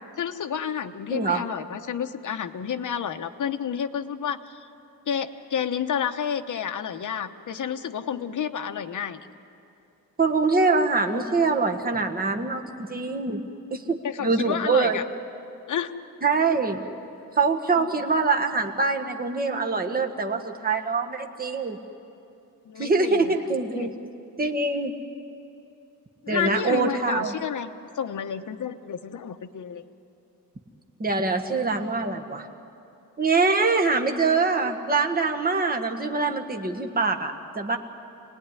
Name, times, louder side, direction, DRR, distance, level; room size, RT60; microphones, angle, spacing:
voice 1, 0.2-4.7 5.1-9.2 14.0-15.0 15.7-15.9 17.8-17.9 22.7-23.3 23.8-23.9 26.2-27.7 28.0-29.8, left 8 dB, 60° left, 6 dB, 1.0 m, -30 dB
voice 2, 1.1-1.4 10.2-13.4 13.7-14.0 14.2-15.0 16.2-16.8 17.4-21.8 22.8-23.9 24.4-25.0 26.3-27.3 31.0-32.5 33.2-37.8, right 4 dB, 25° right, 3 dB, 1.6 m, -24 dB
27.0 x 18.5 x 9.8 m, 2.8 s
wide cardioid pair, 140°, 35 cm